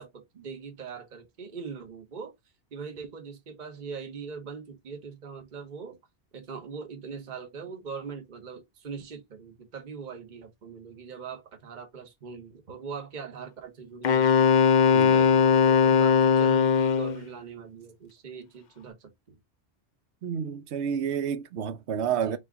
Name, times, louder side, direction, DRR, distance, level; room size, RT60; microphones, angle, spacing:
voice 1, 0.0-2.3 2.7-6.0 6.3-14.5 14.9-19.4 22.2-22.4, right 5 dB, 45° right, 1.1 m, -41 dB
Wind instrument woodwind instrument, 14.0-17.2, left 6 dB, 55° left, 0.6 m, -20 dB
voice 2, 14.9-15.2 20.2-22.4, right 8 dB, 80° right, 0.9 m, -30 dB
5.4 x 2.3 x 3.7 m
omnidirectional pair, 1.1 m